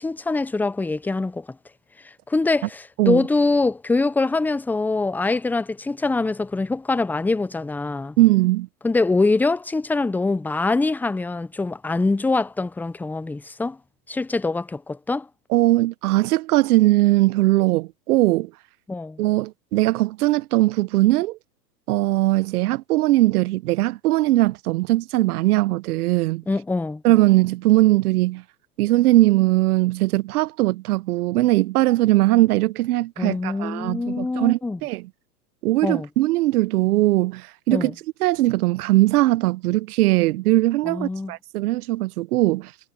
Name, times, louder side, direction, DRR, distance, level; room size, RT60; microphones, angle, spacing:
voice 1, 0.0-1.5 2.3-8.2 8.8-13.8 14.1-15.3 18.9-19.2 26.5-27.0 33.2-34.8 35.8-36.1 37.7-37.9 40.9-41.3, left 3 dB, 5° left, 0.6 m, -24 dB
voice 2, 8.2-8.7 15.5-18.5 19.2-21.4 21.9-26.4 27.0-28.4 28.8-35.1 35.6-37.9 38.2-42.7, right 17 dB, 60° right, 1.2 m, -20 dB
hypercardioid pair, 115°, 50 cm